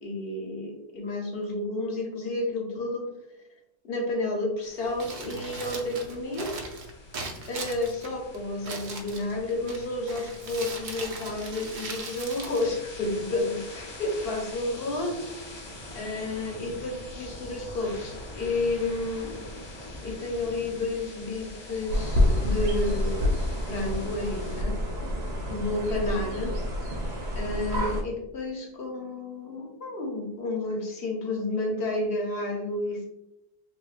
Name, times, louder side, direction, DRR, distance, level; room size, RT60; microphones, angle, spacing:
voice 1, 0.0-3.1 3.8-6.5 7.5-15.5 15.9-19.4 20.0-23.2 23.7-24.8 25.5-26.6 27.4-33.0, left 2 dB, 70° left, 0 dB, 1.0 m, -31 dB
sound 1, 4.6-24.6, left 1 dB, 35° left, 0.5 m, -44 dB
Crumpling crinkling, 4.9-13.4, right 3 dB, 55° right, 0.6 m, -40 dB
sound 2, 21.9-28.0, left 1 dB, 80° right, 1.0 m, -28 dB
3.2 x 3.0 x 2.4 m, 0.89 s
omnidirectional pair, 1.1 m